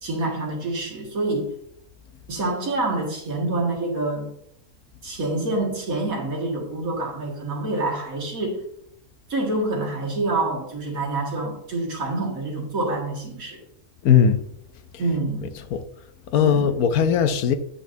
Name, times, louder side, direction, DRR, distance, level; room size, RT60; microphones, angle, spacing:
voice 1, 0.0-1.5 2.3-4.3 5.0-8.6 9.3-13.6 15.0-15.5 16.4-16.8, right 2 dB, 70° right, 2.3 m, -27 dB
voice 2, 14.0-14.4 15.7-15.8 16.3-17.5, left 8 dB, 90° left, 1.1 m, -18 dB
8.2 x 5.8 x 2.7 m
omnidirectional pair, 1.5 m